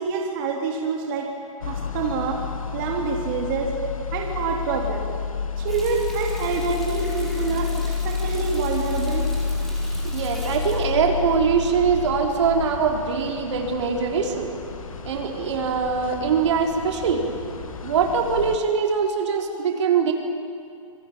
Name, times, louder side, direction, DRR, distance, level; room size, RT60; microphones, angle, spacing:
voice 1, 0.0-1.3 1.7-2.4 2.7-3.7 4.1-5.1 5.6-9.3, right 5 dB, 40° right, 1 dB, 3.5 m, -27 dB
sound 1, 1.6-18.6, left 5 dB, 80° left, 1.5 m, -30 dB
Water tap faucet, 5.7-12.0 12.4-12.6, equal, ahead, 4.6 m, -41 dB
sound 2, 8.7-18.2, left 2 dB, 20° left, 5.5 m, -44 dB
voice 2, 10.0-14.6 15.0-17.3 17.8-20.1, right 6 dB, 55° right, 2 dB, 3.9 m, -23 dB
27.5 x 21.5 x 8.9 m, 2.5 s
hypercardioid pair, 135°, 17 cm